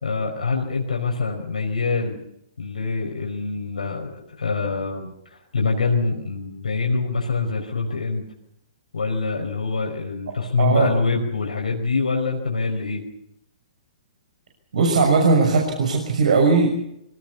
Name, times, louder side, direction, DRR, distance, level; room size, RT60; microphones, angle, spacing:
voice 1, 0.0-2.2 2.6-8.3 8.9-13.0, left 4 dB, 80° left, 0 dB, 5.2 m, -25 dB
voice 2, 10.6-10.9 14.7-16.7, right 4 dB, 70° right, 1 dB, 6.2 m, -18 dB
25.0 x 19.0 x 7.0 m, 0.80 s
hypercardioid pair, 125°, 4 cm